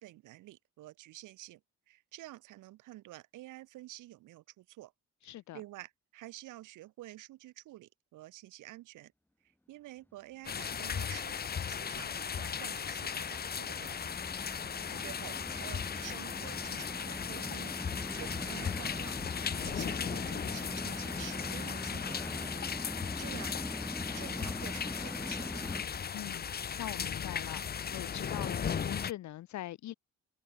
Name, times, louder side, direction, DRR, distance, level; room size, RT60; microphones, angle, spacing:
voice 1, 0.0-1.6 1.9-4.9 5.5-9.1 9.7-14.2 14.7-19.2 19.5-22.7 23.2-23.5 24.1-25.7, right 16 dB, 90° right, 2.3 m, -49 dB
voice 2, 5.2-5.6 14.6-15.0 26.1-26.5 26.8-27.6 27.9-29.9, left 14 dB, 65° left, 0.8 m, -42 dB
sound 1, 10.4-29.1, left 7 dB, 30° left, 0.7 m, -37 dB
sound 2, 10.9-25.8, left 1 dB, 5° left, 3.4 m, -43 dB
sound 3, 14.8-21.7, right 2 dB, 10° right, 4.5 m, -52 dB
cardioid pair, 90°, 30 cm